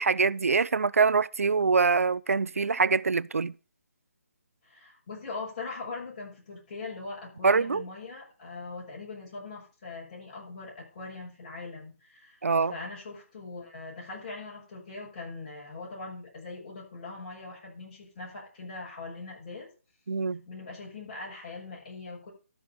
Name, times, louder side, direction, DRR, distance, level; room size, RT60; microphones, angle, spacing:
voice 1, 0.0-3.5 7.4-7.8 12.4-12.7 20.1-20.4, right 4 dB, 85° right, 0.5 m, -24 dB
voice 2, 4.6-19.7 20.4-22.3, left 3 dB, 35° left, 6.7 m, -41 dB
13.0 x 5.1 x 6.6 m
hypercardioid pair, 170°, 7 cm